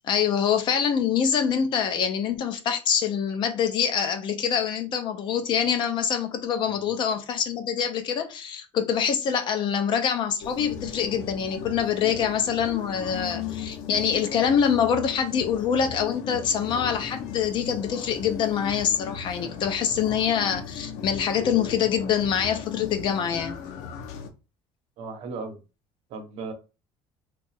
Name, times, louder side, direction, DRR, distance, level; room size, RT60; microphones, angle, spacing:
voice 1, 0.0-23.6, left 8 dB, 40° left, 0.6 m, -25 dB
sound 1, 10.4-24.3, left 7 dB, 85° left, 0.6 m, -37 dB
voice 2, 25.0-25.6 26.1-26.5, right 4 dB, 55° right, 0.9 m, -36 dB
2.8 x 2.4 x 4.2 m
cardioid pair, 170°, 12 cm